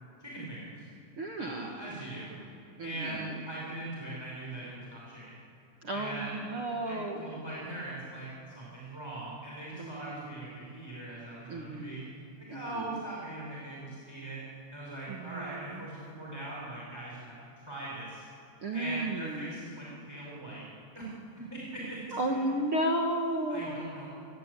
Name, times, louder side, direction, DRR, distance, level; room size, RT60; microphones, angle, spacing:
voice 1, 0.2-0.9 1.4-2.4 2.8-5.3 5.9-6.4 6.8-8.3 8.5-12.0 12.4-14.4 14.7-18.2 18.7-20.6 20.9-21.1 21.3-22.0 22.3-22.4 23.5-24.1, right 1 dB, 5° right, -5 dB, 5.1 m, -41 dB
voice 2, 1.2-1.7 2.8-3.4 5.8-7.2 9.8-10.5 11.5-12.0 12.5-13.0 15.1-15.8 18.6-19.6 22.1-23.8, right 1 dB, 50° right, 1 dB, 1.8 m, -33 dB
26.0 x 20.5 x 8.4 m, 2.9 s
omnidirectional pair, 4.5 m